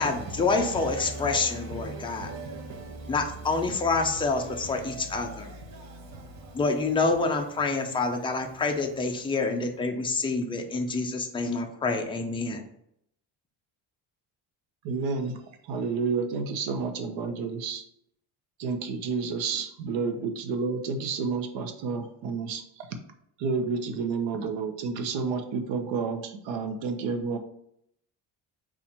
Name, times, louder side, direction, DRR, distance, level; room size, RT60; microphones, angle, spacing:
voice 1, 0.0-2.3 3.1-5.5 6.5-12.6, left 3 dB, 15° left, 0.3 m, -27 dB
voice 2, 1.0-3.1 4.8-6.6, right 2 dB, 40° right, 0.9 m, -40 dB
voice 3, 14.8-15.4 15.7-17.8 18.6-22.6 23.4-27.4, right 5 dB, 90° right, 0.8 m, -30 dB
4.2 x 2.5 x 4.2 m
cardioid pair, 140°, 44 cm